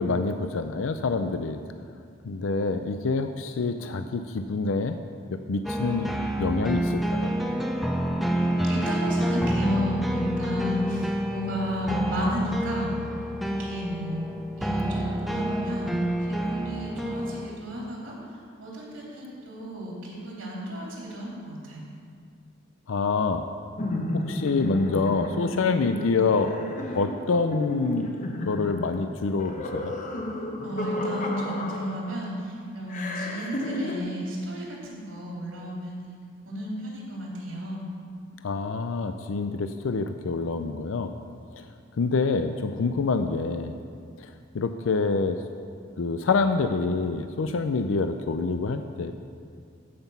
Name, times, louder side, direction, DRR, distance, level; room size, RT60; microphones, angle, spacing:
voice 1, 0.0-1.6 2.2-5.0 5.5-6.1 6.4-7.3 22.9-23.4 24.1-26.7 26.9-28.1 28.5-29.9 38.4-41.1 42.0-43.7 44.5-45.4 46.0-49.1, left 4 dB, 90° left, 8 dB, 0.5 m, -26 dB
sound 1, 5.6-17.5, right 1 dB, ahead, 0.5 m, -28 dB
voice 2, 8.0-12.9 13.4-14.2 14.6-18.1 18.6-21.9 30.6-36.2 36.4-37.8, equal, 80° right, -4 dB, 3.2 m, -33 dB
sound 2, 23.8-32.3 32.9-34.0, left 1 dB, 40° left, 0.9 m, -33 dB
14.0 x 5.9 x 5.6 m, 2.2 s
head